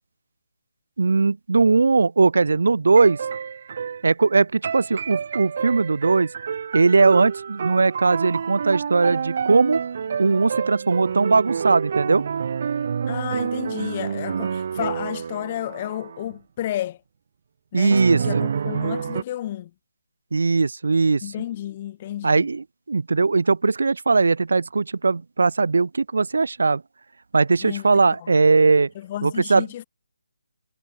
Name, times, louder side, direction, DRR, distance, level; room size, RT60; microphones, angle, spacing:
voice 1, 1.0-3.2 4.0-6.3 6.7-9.8 10.2-12.2 17.7-18.4 20.3-21.2 22.2-26.8 27.3-28.9 29.2-29.6, right 4 dB, 70° right, 0.7 m, -19 dB
sound 1, 3.0-4.1 4.6-16.3 17.9-19.2, right 6 dB, 50° right, 2.8 m, -28 dB
voice 2, 13.1-17.0 17.7-19.7 21.2-22.5 27.6-28.3 28.9-29.8, left 13 dB, 30° left, 3.2 m, -32 dB
figure-of-eight pair, 160°, 0 cm